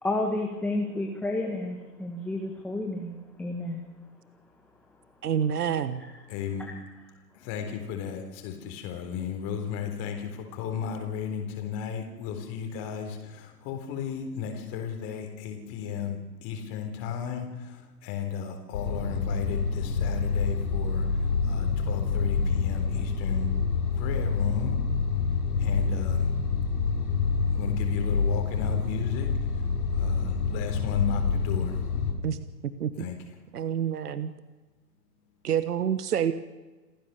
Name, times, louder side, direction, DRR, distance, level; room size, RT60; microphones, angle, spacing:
voice 1, 0.0-3.8 6.0-6.1 6.6-6.7, left 2 dB, 5° left, 1 dB, 1.4 m, -31 dB
voice 2, 5.2-6.0 32.2-32.4 32.8-32.9 33.5-34.3 35.4-36.3, right 8 dB, 65° right, 13 dB, 1.4 m, -27 dB
voice 3, 6.3-6.6 7.4-21.1 21.4-23.5 24.0-24.7 25.6-26.3 27.5-29.3 30.0-31.8 33.0-33.3, left 7 dB, 30° left, 5 dB, 3.9 m, -34 dB
sound 1, 18.7-32.1, left 5 dB, 60° left, 6.1 m, -27 dB
28.0 x 15.5 x 6.9 m, 1.2 s
hypercardioid pair, 130°, 50 cm